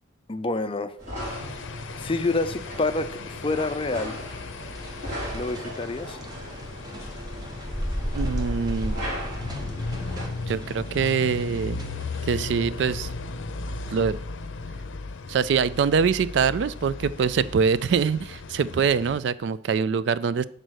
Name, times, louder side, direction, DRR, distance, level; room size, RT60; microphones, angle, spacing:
voice 1, 0.3-0.9 2.0-4.2 5.3-6.2, left 2 dB, 25° left, 11 dB, 0.5 m, -27 dB
sound 1, 1.0-10.2, equal, 45° right, 3.8 m, -34 dB
sound 2, 1.2-19.2, left 3 dB, 75° left, 0.6 m, -36 dB
sound 3, 4.6-12.2, right 1 dB, 20° right, 0.9 m, -46 dB
voice 2, 8.1-9.0 10.5-11.8 12.3-13.1 13.9-14.2 15.3-20.4, right 6 dB, 65° right, 17 dB, 0.3 m, -24 dB
7.7 x 4.0 x 6.3 m, 0.64 s
head